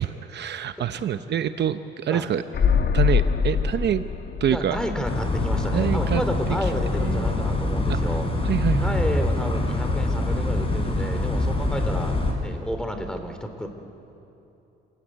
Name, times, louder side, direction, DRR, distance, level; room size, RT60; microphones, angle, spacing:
voice 1, 0.0-2.4 2.9-4.0 4.4-4.8 5.7-6.2 6.6-6.7 7.0-7.4 7.9-8.1 8.4-9.0, right 10 dB, 60° right, 10 dB, 0.8 m, -26 dB
sound 1, 2.5-6.3 6.5-6.6, left 7 dB, 55° left, 1.7 m, -24 dB
voice 2, 4.5-8.3 8.8-12.1 12.4-13.7, equal, 5° left, 6 dB, 3.2 m, -31 dB
sound 2, 5.0-12.3, left 2 dB, 30° left, 5.3 m, -24 dB
27.5 x 15.5 x 9.7 m, 2.9 s
cardioid pair, 90°, 20 cm